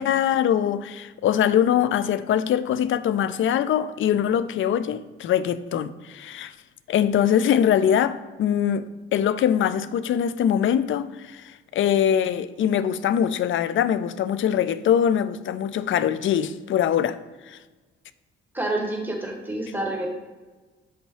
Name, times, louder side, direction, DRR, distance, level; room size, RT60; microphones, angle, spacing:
voice 1, 0.0-6.5 6.9-17.2 17.5-17.6, left 9 dB, 45° left, 0.4 m, -23 dB
voice 2, 18.5-20.1, right 1 dB, 5° right, 1.5 m, -28 dB
6.6 x 5.2 x 3.0 m
figure-of-eight pair, 40°, 29 cm